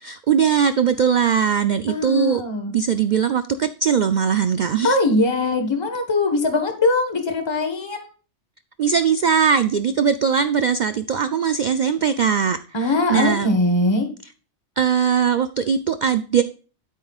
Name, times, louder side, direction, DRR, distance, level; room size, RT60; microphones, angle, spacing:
voice 1, 0.0-2.4 2.7-5.0 8.8-12.6 12.9-13.6 14.8-16.4, right 7 dB, 60° right, 10 dB, 0.5 m, -20 dB
voice 2, 1.9-2.7 4.8-8.1 12.7-14.1, left 2 dB, 20° left, 5 dB, 1.3 m, -21 dB
12.0 x 8.3 x 2.4 m, 0.37 s
omnidirectional pair, 1.3 m